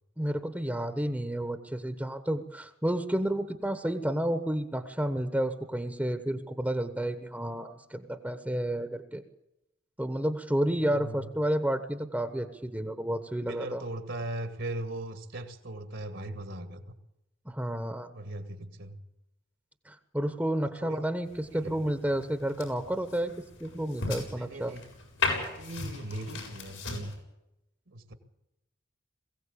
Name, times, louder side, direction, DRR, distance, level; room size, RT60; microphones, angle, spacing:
voice 1, 0.2-9.2 10.0-13.8 17.4-18.1 19.8-23.3 23.6-24.8, right 1 dB, 10° right, 9 dB, 1.2 m, -31 dB
voice 2, 10.8-11.3 13.5-16.8 18.1-19.0 20.6-21.0 21.6-21.8 24.4-24.8 25.5-27.1 27.9-28.1, right 1 dB, 65° right, 8 dB, 2.2 m, -39 dB
sound 1, 21.3-27.1, left 3 dB, 85° left, 7.9 m, -37 dB
22.0 x 16.5 x 8.6 m, 0.88 s
head